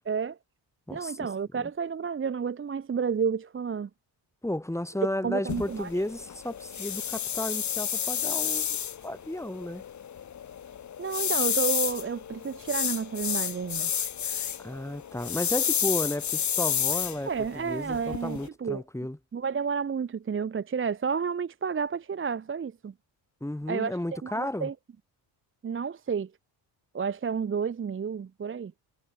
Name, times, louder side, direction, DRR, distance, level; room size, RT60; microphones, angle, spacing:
voice 1, 0.1-0.4 0.9-3.9 5.2-5.9 11.0-13.9 17.3-18.8 19.3-22.9 23.7-24.7 25.6-26.3 26.9-28.7, right 6 dB, 25° right, 0.8 m, -31 dB
voice 2, 0.9-1.3 1.6-1.7 4.4-8.7 9.0-9.8 14.6-19.2 23.4-24.7, left 1 dB, 5° left, 7.8 m, -33 dB
sound 1, 5.5-18.5, left 9 dB, 35° left, 1.1 m, -31 dB
cardioid pair, 140°, 47 cm